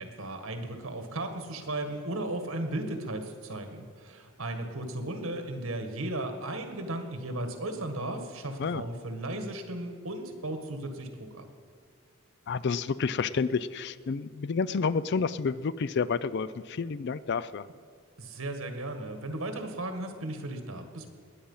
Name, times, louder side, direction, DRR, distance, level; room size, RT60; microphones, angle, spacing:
voice 1, 0.0-11.5 18.2-21.1, right 1 dB, 80° right, 6 dB, 1.7 m, -35 dB
voice 2, 12.5-17.7, left 5 dB, 55° left, 17 dB, 0.4 m, -30 dB
20.0 x 8.9 x 5.6 m, 2.1 s
head